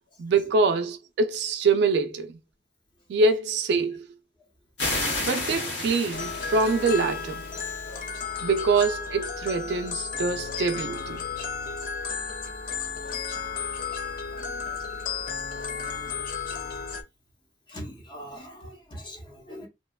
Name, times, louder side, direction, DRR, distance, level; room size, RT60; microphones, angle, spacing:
voice 1, 0.2-2.3 3.1-4.1 5.2-7.4 8.4-11.2, right 4 dB, 65° right, 0.3 m, -24 dB
sound 1, 4.8-8.1, left 2 dB, 75° left, 1.1 m, -32 dB
sound 2, 6.1-17.0, left 5 dB, 50° left, 0.4 m, -33 dB
voice 2, 14.3-14.8 15.7-16.3 16.6-16.7 17.7-19.7, equal, 25° left, 0.8 m, -43 dB
2.8 x 2.1 x 2.2 m
head